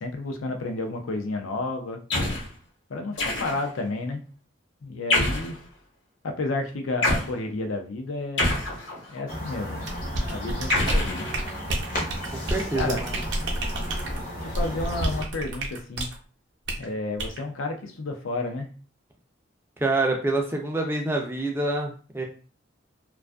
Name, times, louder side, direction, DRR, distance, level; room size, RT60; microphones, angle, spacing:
voice 1, 0.0-2.0 2.9-4.2 4.8-5.6 6.2-8.5 9.1-9.9 10.2-11.3 12.3-12.4 12.7-13.0 14.4-16.1 16.8-18.7, left 2 dB, 90° left, 4 dB, 0.5 m, -31 dB
sound 1, 2.1-2.5 3.2-3.8 5.1-5.6 7.0-7.3 8.4-9.2 10.7-11.8, left 1 dB, 70° left, 1.0 m, -26 dB
sound 2, 9.3-15.2, equal, 45° left, 0.7 m, -34 dB
sound 3, 9.8-16.2 16.7-16.8 17.2-17.4, right 1 dB, 60° right, 0.5 m, -29 dB
voice 2, 12.3-13.1 19.8-22.2, right 2 dB, 10° right, 1 dB, 0.3 m, -26 dB
2.4 x 2.3 x 2.2 m, 0.38 s
head